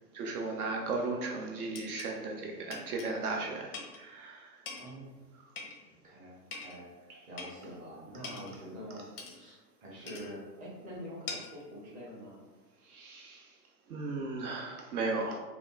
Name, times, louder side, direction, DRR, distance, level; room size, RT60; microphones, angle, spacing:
voice 1, 0.1-4.5 7.1-7.2 12.9-13.5 13.9-15.4, right 3 dB, 60° right, 1 dB, 0.5 m, -36 dB
sound 1, 1.0-1.1 1.8-2.2 2.7-3.1 3.7-4.0 4.7-5.0 5.6-6.0 6.5-6.8 7.4-7.6 8.2-8.6 9.2-9.4 10.1-10.3 11.3-11.6, left 4 dB, 40° left, 0.4 m, -43 dB
voice 2, 4.8-5.1 6.0-9.0 9.3-12.4, equal, 15° right, -5 dB, 0.6 m, -46 dB
3.3 x 2.3 x 2.3 m, 1.2 s
hypercardioid pair, 125°, 50 cm